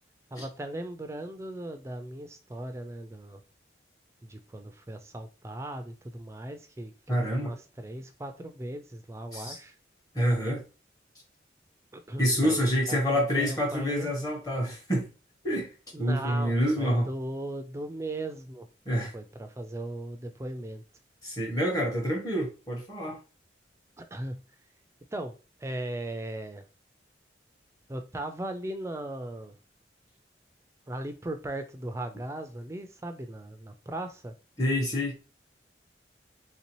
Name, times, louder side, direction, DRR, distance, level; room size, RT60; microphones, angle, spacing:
voice 1, 0.3-3.4 4.2-9.7 11.9-12.6 12.9-14.1 15.9-18.7 19.1-20.8 24.0-24.4 25.1-26.6 27.9-29.6 30.9-34.3, right 1 dB, 15° right, 7 dB, 0.4 m, -38 dB
voice 2, 7.1-7.5 9.3-9.6 10.1-10.6 12.2-15.1 15.4-15.7 16.0-17.1 18.9-19.1 21.2-23.2 34.6-35.1, equal, 20° left, -2 dB, 1.0 m, -27 dB
3.3 x 2.7 x 3.0 m, 0.32 s
head